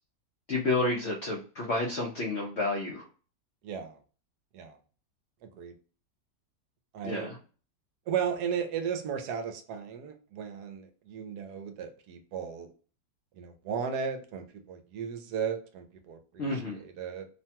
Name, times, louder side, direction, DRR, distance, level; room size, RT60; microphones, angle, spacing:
voice 1, 0.5-3.0 7.0-7.4 16.4-16.8, left 2 dB, 65° left, 0.6 m, -30 dB
voice 2, 3.6-4.0 4.5-4.8 5.4-5.7 6.9-7.3 8.1-12.7 13.4-17.3, right 7 dB, 75° right, 1.1 m, -35 dB
3.0 x 2.2 x 2.7 m
omnidirectional pair, 1.9 m